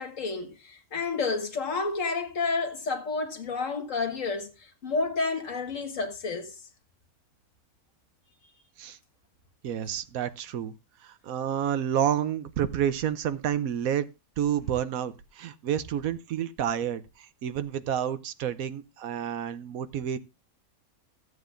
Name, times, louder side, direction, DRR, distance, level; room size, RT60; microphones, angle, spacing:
voice 1, 0.0-6.6, left 4 dB, 65° left, 2.0 m, -30 dB
voice 2, 9.6-10.7 11.0-14.1 14.4-20.2, right 9 dB, 75° right, 1.1 m, -29 dB
15.0 x 8.0 x 2.5 m
omnidirectional pair, 1.5 m